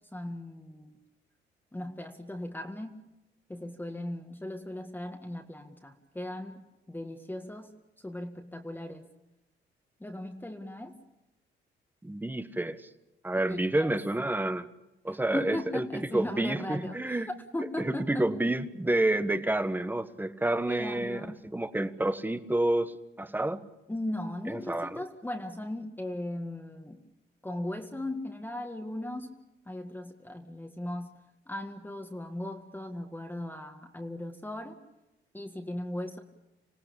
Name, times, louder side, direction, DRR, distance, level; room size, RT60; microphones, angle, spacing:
voice 1, 0.1-1.0 1.7-3.0 3.5-7.7 8.0-9.1 10.0-11.0 13.5-13.9 15.1-17.2 17.5-18.4 20.7-21.4 23.9-27.1 27.4-34.8 35.3-36.2, left 1 dB, 10° left, 3 dB, 1.8 m, -38 dB
voice 2, 12.0-12.9 13.2-14.7 15.0-15.9 16.1-17.3 17.6-21.3 21.5-23.7 24.5-25.0, right 1 dB, 10° right, 11 dB, 1.4 m, -29 dB
26.5 x 17.5 x 8.6 m, 0.95 s
cardioid pair, 90°, 20 cm